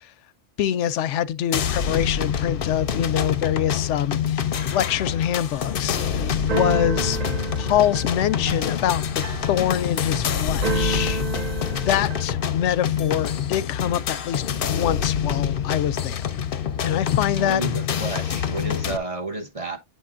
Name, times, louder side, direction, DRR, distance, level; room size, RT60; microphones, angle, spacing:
voice 1, 0.6-7.2 7.6-11.2 11.7-16.2 16.8-17.6, left 10 dB, 85° left, 0.9 m, -25 dB
sound 1, 1.5-19.0, left 8 dB, 60° left, 0.7 m, -26 dB
Keyboard (musical), 5.5-12.3, right 6 dB, 50° right, 0.5 m, -32 dB
voice 2, 17.4-19.8, right 2 dB, 30° right, 1.0 m, -31 dB
9.0 x 5.5 x 2.4 m
omnidirectional pair, 1.2 m